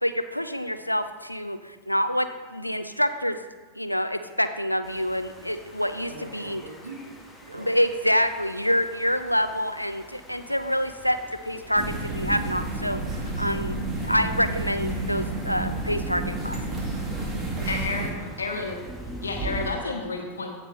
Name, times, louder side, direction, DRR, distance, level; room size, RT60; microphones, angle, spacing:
voice 1, 0.0-3.4 3.8-6.6 7.5-11.2 11.4-16.8, equal, 90° left, 10 dB, 0.5 m, -27 dB
sound 1, 4.8-19.7, right 1 dB, ahead, 1.3 m, -43 dB
voice 2, 6.0-7.7 8.3-8.4 8.8-9.0 17.3-18.3, right 3 dB, 75° right, -3 dB, 1.4 m, -44 dB
sound 2, 11.7-18.1, right 2 dB, 15° right, 1.9 m, -30 dB
voice 3, 17.6-18.1 18.4-18.8 19.2-20.5, left 3 dB, 75° left, 2 dB, 1.4 m, -30 dB
15.0 x 5.3 x 3.1 m, 1.4 s
figure-of-eight pair, 90°, 0 cm